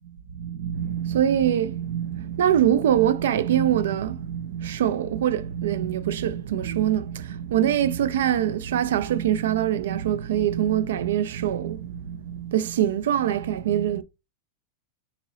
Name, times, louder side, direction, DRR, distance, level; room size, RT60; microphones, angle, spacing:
voice 1, 0.3-14.0, right 10 dB, 80° right, 0.4 m, -24 dB
2.9 x 2.8 x 3.9 m
supercardioid pair, 180°, 0 cm